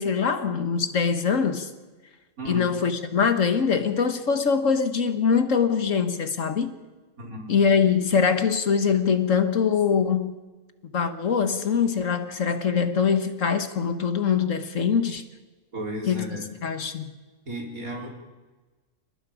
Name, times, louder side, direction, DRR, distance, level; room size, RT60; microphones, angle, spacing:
voice 1, 0.0-1.7 2.5-6.7 7.5-10.3 10.9-15.2 16.1-17.0, left 6 dB, 65° left, 1.7 m, -23 dB
voice 2, 2.4-2.7 7.2-7.5 15.7-16.4 17.4-18.1, right 1 dB, 85° right, 4.9 m, -34 dB
29.0 x 19.5 x 5.1 m
omnidirectional pair, 1.5 m